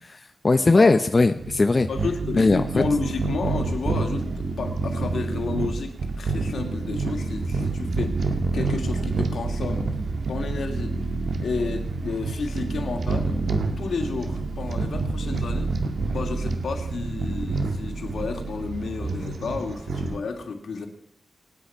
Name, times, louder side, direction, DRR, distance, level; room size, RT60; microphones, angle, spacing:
voice 1, 0.0-1.9 2.3-2.8, left 3 dB, 30° left, 8 dB, 0.7 m, -19 dB
sound 1, 0.8-20.2, right 3 dB, 65° right, 1.8 m, -28 dB
voice 2, 1.9-9.9 10.3-11.0 11.4-13.4 13.8-15.7 16.1-20.9, left 4 dB, 75° left, 4 dB, 2.7 m, -31 dB
27.0 x 9.4 x 5.8 m, 0.67 s
wide cardioid pair, 155°, 0 cm